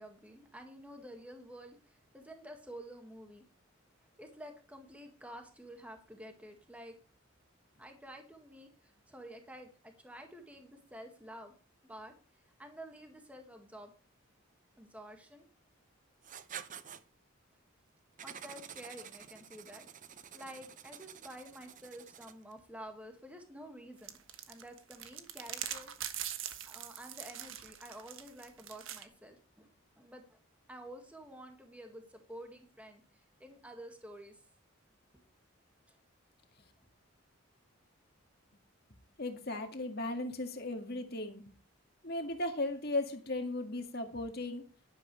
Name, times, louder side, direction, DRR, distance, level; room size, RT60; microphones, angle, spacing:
voice 1, 0.0-3.4 4.0-7.0 7.8-11.5 11.8-12.1 12.6-13.9 14.8-15.5 18.2-19.8 20.3-24.2 24.5-25.9 26.7-29.7 30.0-30.4 30.7-34.4 35.9-36.0, equal, 5° right, 4 dB, 1.9 m, -50 dB
Writing, 16.2-17.0 18.2-22.5, right 8 dB, 35° right, 0.7 m, -49 dB
sound 1, 24.0-29.0, right 10 dB, 65° right, 1.3 m, -42 dB
voice 2, 39.2-41.4 42.0-44.6, left 2 dB, 45° left, 5 dB, 1.9 m, -36 dB
11.5 x 11.0 x 3.3 m, 0.38 s
head